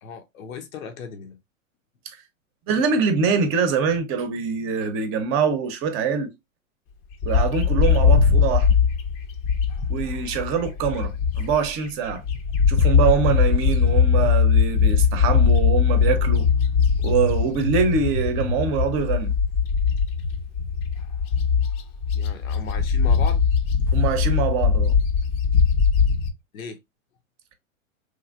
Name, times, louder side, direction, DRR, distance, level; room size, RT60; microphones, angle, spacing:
voice 1, 0.0-1.4 22.1-23.4 26.5-26.8, left 6 dB, 80° left, 0.8 m, -36 dB
voice 2, 2.7-6.3 7.2-8.7 9.9-12.2 12.7-16.5 17.0-19.3 23.9-25.0, right 6 dB, 30° right, 0.7 m, -24 dB
Bird, 7.2-11.7 12.1-26.3, left 6 dB, 35° left, 0.6 m, -20 dB
3.1 x 2.5 x 2.4 m
hypercardioid pair, 110°, 41 cm